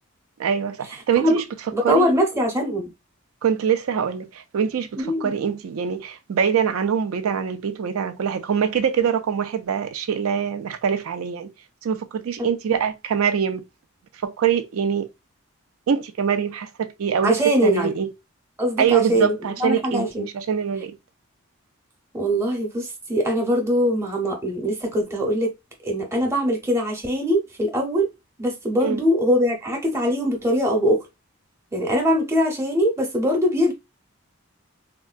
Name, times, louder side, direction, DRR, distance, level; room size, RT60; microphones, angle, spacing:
voice 1, 0.4-1.4 1.8-2.1 3.4-11.5 11.8-13.6 14.2-15.1 15.9-18.1 18.8-21.0 28.8-29.0, right 7 dB, 90° right, 0.4 m, -24 dB
voice 2, 1.7-2.9 5.0-5.3 12.4-12.5 17.2-17.9 18.6-20.3 22.1-25.5 25.8-28.1 28.4-31.1 31.7-33.7, equal, 15° right, 0.7 m, -22 dB
3.6 x 2.2 x 2.4 m
head